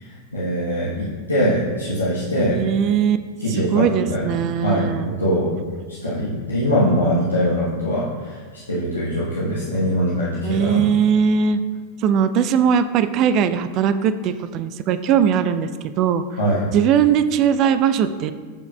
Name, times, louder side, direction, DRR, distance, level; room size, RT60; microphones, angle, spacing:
voice 1, 0.0-2.6 3.4-4.3 4.6-5.5 5.9-10.9 16.4-16.6, equal, 80° left, -8 dB, 1.1 m, -22 dB
voice 2, 2.5-3.2 3.7-5.1 10.4-11.6 12.0-16.2 16.7-18.3, right 8 dB, 40° right, 12 dB, 0.3 m, -19 dB
12.5 x 4.7 x 2.2 m, 1.6 s
figure-of-eight pair, 90°, 0 cm